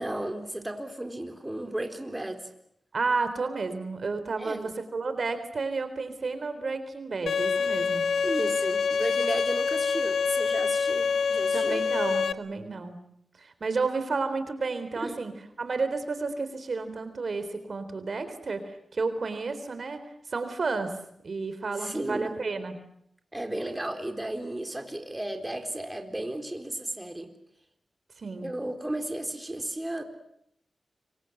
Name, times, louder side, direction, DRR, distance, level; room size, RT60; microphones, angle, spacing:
voice 1, 0.0-2.5 4.4-4.7 8.2-11.8 15.0-15.2 21.8-22.3 23.3-27.3 28.4-30.0, right 1 dB, 15° right, 5 dB, 4.0 m, -34 dB
voice 2, 2.9-8.0 11.5-13.0 13.4-21.0 21.2-22.8 28.2-28.5, right 4 dB, 60° right, 10 dB, 3.8 m, -31 dB
Bowed string instrument, 7.3-12.3, left 5 dB, 85° left, 1.1 m, -26 dB
27.0 x 24.0 x 7.9 m, 0.74 s
cardioid pair, 55°, 0 cm